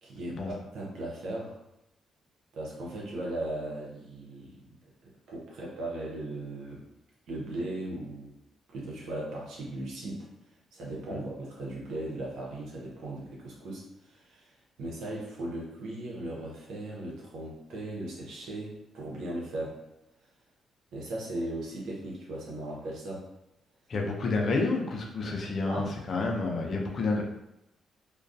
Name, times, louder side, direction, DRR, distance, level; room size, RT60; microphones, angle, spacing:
voice 1, 0.0-1.6 2.5-4.6 5.0-6.8 7.3-8.3 8.7-10.3 10.7-14.5 14.8-19.8 20.9-23.3 25.7-25.9, right 1 dB, 80° right, -3 dB, 0.8 m, -37 dB
voice 2, 23.9-27.2, left 3 dB, 55° left, 1 dB, 0.5 m, -29 dB
2.3 x 2.2 x 2.6 m, 0.88 s
cardioid pair, 75°, 0 cm